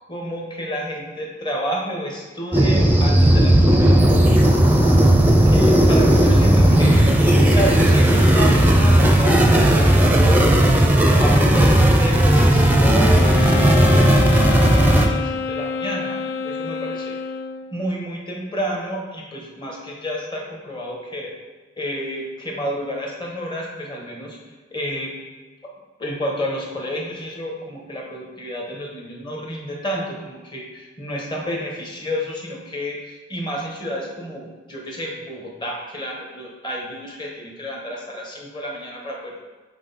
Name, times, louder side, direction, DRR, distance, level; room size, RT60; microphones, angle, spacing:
voice 1, 0.1-4.2 5.5-10.5 11.1-17.2 17.7-21.3 21.8-24.4 24.7-25.1 26.0-39.3, equal, 25° left, -2 dB, 1.3 m, -30 dB
sound 1, 2.5-15.1, right 1 dB, 10° right, 0.6 m, -15 dB
Wind instrument woodwind instrument, 13.1-17.8, left 6 dB, 60° left, 0.4 m, -27 dB
7.7 x 3.9 x 4.2 m, 1.3 s
head